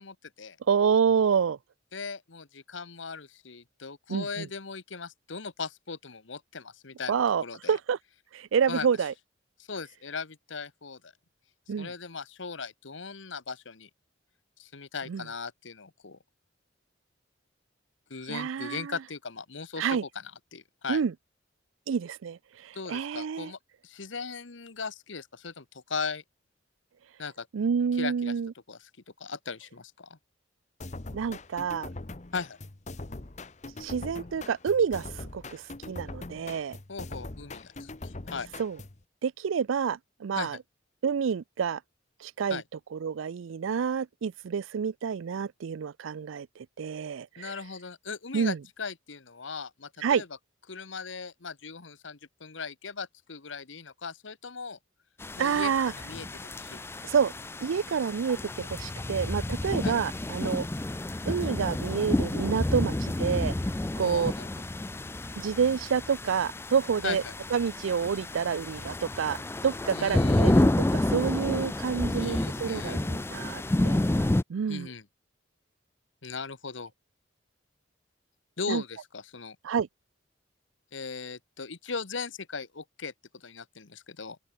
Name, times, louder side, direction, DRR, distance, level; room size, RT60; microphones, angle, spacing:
voice 1, 0.0-0.6 1.9-7.8 8.7-9.1 9.6-11.1 11.8-13.9 14.6-16.2 18.1-21.0 22.7-26.2 27.2-27.5 27.9-28.3 28.7-28.9 29.2-30.2 32.3-32.6 36.9-38.5 40.3-40.6 42.5-42.6 47.4-50.3 50.7-54.8 55.4-57.0 59.8-60.0 64.0-64.5 67.0-67.3 69.9-70.6 72.1-73.1 74.7-75.0 76.2-76.9 78.6-79.6 80.9-84.4, left 5 dB, 75° left, 1.3 m, -38 dB
voice 2, 0.7-1.6 4.1-4.5 7.1-8.0 8.3-9.1 11.7-11.9 15.1-15.2 18.3-18.9 19.8-20.0 20.9-21.1 21.9-23.5 27.5-28.5 31.1-31.9 33.8-35.1 35.3-36.8 38.6-38.8 39.2-40.6 41.0-41.8 42.2-42.6 42.9-47.5 48.3-48.6 50.0-50.2 55.4-55.9 57.0-57.3 57.6-60.7 61.3-63.5 64.0-64.3 65.4-67.2 67.5-74.0 74.5-74.9 78.7-78.8 79.6-79.9, right 6 dB, 90° right, 0.4 m, -28 dB
sound 1, 30.8-39.0, left 2 dB, 35° left, 1.1 m, -42 dB
sound 2, 55.2-74.4, left 1 dB, 10° left, 0.4 m, -29 dB
open air
head